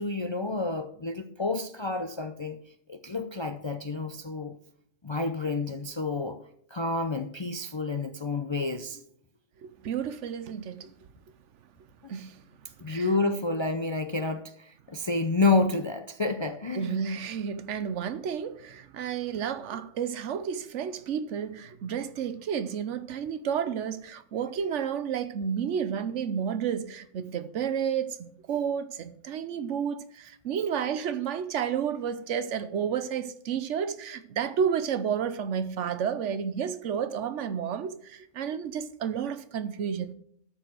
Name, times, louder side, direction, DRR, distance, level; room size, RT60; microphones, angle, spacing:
voice 1, 0.0-2.6 2.9-4.6 5.0-6.4 6.7-9.0 12.0-12.1 12.8-17.0, left 3 dB, 40° left, 0.4 m, -29 dB
voice 2, 9.6-10.9 12.1-12.4 12.9-13.1 16.7-40.1, right 7 dB, 75° right, 1.0 m, -31 dB
12.5 x 4.7 x 6.3 m
omnidirectional pair, 1.3 m